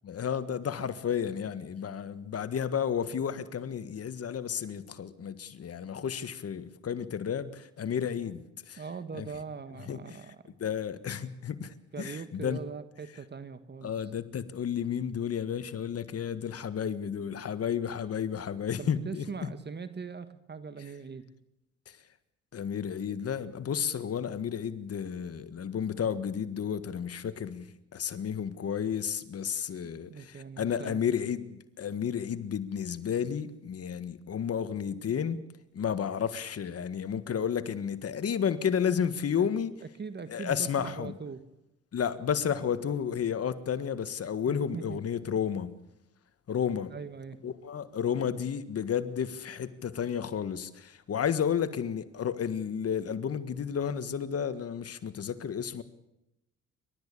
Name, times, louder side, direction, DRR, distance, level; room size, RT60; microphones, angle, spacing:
voice 1, 0.0-8.8 9.1-9.3 9.9-10.2 10.6-12.6 13.8-19.5 21.9-22.0 22.5-35.4 35.7-39.7 40.3-41.1 41.9-45.7 46.5-46.9 47.4-55.8, left 8 dB, 50° left, 1.7 m, -32 dB
voice 2, 8.8-10.4 11.9-14.1 18.8-21.3 30.1-31.0 39.4-39.5 39.8-41.4 44.4-45.0 46.9-47.4, right 5 dB, 35° right, 1.6 m, -41 dB
28.5 x 13.5 x 8.5 m
cardioid pair, 90°, 30 cm